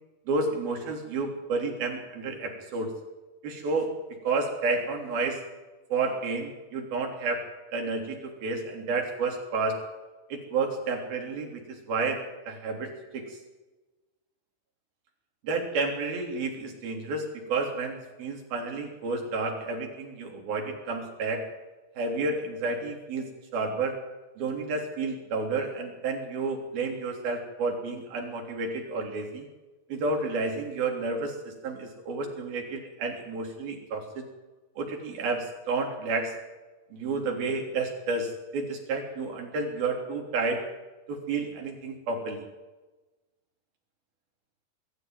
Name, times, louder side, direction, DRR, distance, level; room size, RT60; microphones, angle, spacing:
voice 1, 0.3-2.9 3.4-3.9 4.3-5.4 5.9-7.5 7.7-9.8 10.3-13.4 15.4-21.4 22.0-24.0 24.4-29.5 29.9-34.2 34.8-36.3 36.9-40.6 41.1-42.4, right 3 dB, 85° right, 2 dB, 5.3 m, -31 dB
22.0 x 14.0 x 9.4 m, 1.2 s
omnidirectional pair, 4.1 m